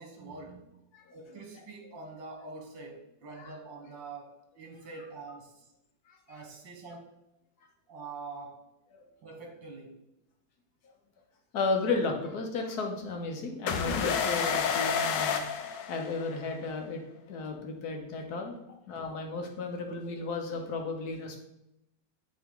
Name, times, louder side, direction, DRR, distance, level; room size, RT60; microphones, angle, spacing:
voice 1, 0.0-5.7 6.3-7.1 7.9-8.7 9.2-10.0, right 3 dB, 70° right, 2 dB, 2.0 m, -45 dB
voice 2, 11.5-15.4 15.9-17.0 17.3-18.6 18.9-21.4, left 3 dB, 60° left, 3 dB, 1.5 m, -33 dB
sound 1, 13.7-16.5, left 6 dB, 75° left, 1.3 m, -29 dB
9.7 x 3.5 x 3.7 m, 0.89 s
omnidirectional pair, 2.0 m